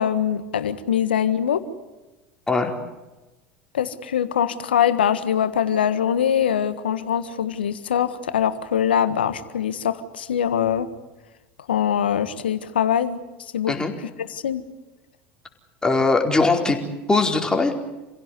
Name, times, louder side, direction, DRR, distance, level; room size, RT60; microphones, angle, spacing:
voice 1, 0.0-1.6 3.7-10.9 11.7-13.8 14.2-14.6, left 9 dB, 85° left, 12 dB, 1.6 m, -23 dB
voice 2, 15.8-16.8 17.1-17.7, left 3 dB, 15° left, 2 dB, 4.4 m, -20 dB
28.5 x 16.5 x 9.8 m, 1.1 s
hypercardioid pair, 80°, 5 cm